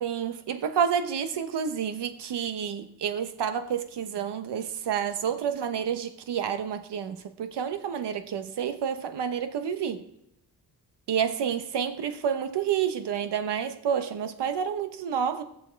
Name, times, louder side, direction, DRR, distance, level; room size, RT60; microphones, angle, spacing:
voice 1, 0.0-10.0 11.1-15.4, right 8 dB, 80° right, 1.1 m, -29 dB
19.0 x 6.8 x 4.6 m
wide cardioid pair, 170°, 40 cm